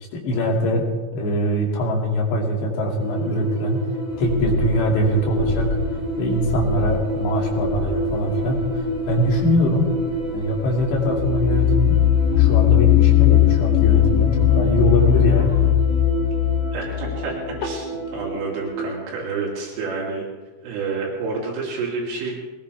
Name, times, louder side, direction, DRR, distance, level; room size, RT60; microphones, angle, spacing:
voice 1, 0.1-0.8 1.1-3.9 4.2-5.8 6.2-9.9 10.3-12.0 12.4-15.6, equal, 65° left, -1 dB, 4.6 m, -22 dB
sound 1, 3.0-18.9, right 1 dB, 35° left, 5.3 m, -29 dB
sound 2, 4.1-12.8 13.1-15.7, left 1 dB, 5° left, 2.4 m, -32 dB
sound 3, 11.1-17.8, left 14 dB, 85° left, 2.6 m, -18 dB
voice 2, 16.7-17.8 18.1-20.3 20.6-22.4, right 4 dB, 80° right, -3 dB, 5.7 m, -29 dB
22.0 x 18.5 x 3.5 m, 1.3 s
omnidirectional pair, 5.7 m